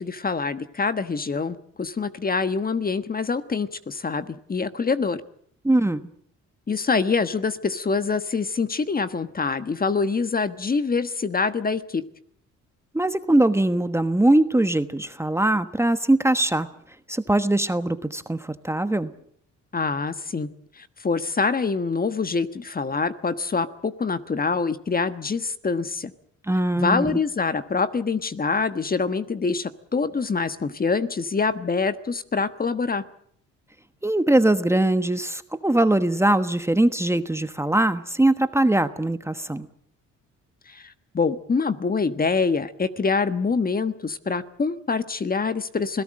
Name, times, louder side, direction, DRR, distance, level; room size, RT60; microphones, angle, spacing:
voice 1, 0.0-5.2 6.7-12.0 19.7-20.5 20.8-26.1 26.7-33.0 40.7-40.8 41.1-46.0, left 4 dB, 30° left, 11 dB, 1.3 m, -25 dB
voice 2, 5.6-6.0 12.9-16.7 17.1-19.1 26.5-27.2 34.0-39.7, right 1 dB, 10° right, 11 dB, 1.2 m, -21 dB
27.0 x 17.5 x 7.6 m, 0.66 s
cardioid pair, 90°, 30 cm